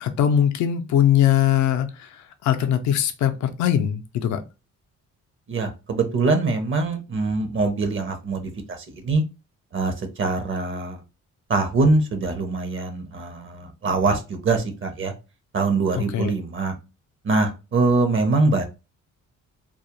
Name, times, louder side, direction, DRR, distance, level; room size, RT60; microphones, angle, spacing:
voice 1, 0.0-4.4 16.0-16.3, left 10 dB, 70° left, 7 dB, 0.5 m, -21 dB
voice 2, 5.5-9.2 9.7-11.0 11.5-15.1 15.5-16.7 17.2-18.6, right 3 dB, 40° right, 6 dB, 0.6 m, -23 dB
2.3 x 2.0 x 2.9 m, 0.28 s
cardioid pair, 90°, 30 cm